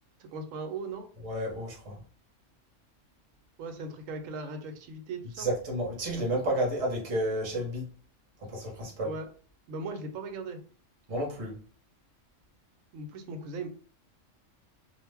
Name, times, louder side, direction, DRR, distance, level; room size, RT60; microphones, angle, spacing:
voice 1, 0.2-1.1 3.6-5.5 9.0-9.3 9.7-10.6 12.9-13.7, right 3 dB, 85° right, 1.0 m, -38 dB
voice 2, 1.2-2.0 5.4-7.9 8.4-9.1 11.1-11.6, right 1 dB, 30° right, 0.8 m, -31 dB
2.4 x 2.0 x 3.3 m
omnidirectional pair, 1.3 m